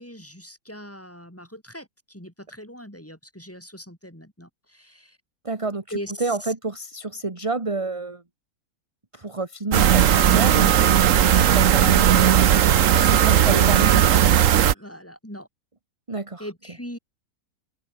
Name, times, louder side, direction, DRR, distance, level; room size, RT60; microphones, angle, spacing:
voice 1, 0.0-5.2 5.9-6.5 13.1-13.5 14.7-15.5 16.4-17.0, equal, 10° left, 4.4 m, -39 dB
voice 2, 5.4-5.8 6.2-8.2 9.1-12.5 12.9-14.2 16.1-16.5, right 3 dB, 20° right, 1.7 m, -29 dB
sound 1, 9.7-14.7, right 10 dB, 60° right, 1.2 m, -17 dB
open air
omnidirectional pair, 1.6 m